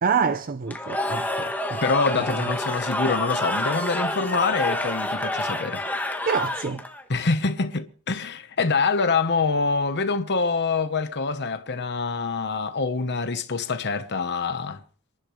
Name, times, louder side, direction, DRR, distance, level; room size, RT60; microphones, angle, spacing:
voice 1, 0.0-1.8 6.2-6.8, right 6 dB, 40° right, 0.6 m, -26 dB
Cheering / Crowd, 0.7-7.0, left 1 dB, 10° left, 1.4 m, -28 dB
voice 2, 1.8-5.8 7.1-14.8, left 4 dB, 50° left, 1.0 m, -25 dB
28.5 x 11.5 x 3.2 m
head